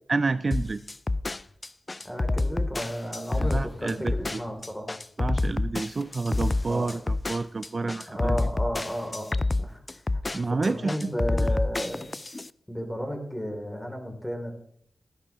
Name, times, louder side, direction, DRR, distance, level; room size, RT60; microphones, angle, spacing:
voice 1, 0.1-0.8 3.3-4.4 5.2-8.4 10.3-11.6, right 3 dB, 50° right, 13 dB, 0.4 m, -29 dB
sound 1, 0.5-12.5, left 2 dB, 35° left, 0.3 m, -28 dB
voice 2, 2.0-4.9 6.7-6.9 8.1-9.8 10.1-12.1 12.7-14.5, equal, 10° left, 3 dB, 2.9 m, -33 dB
15.5 x 10.5 x 3.0 m, 0.69 s
cardioid pair, 45°, 0 cm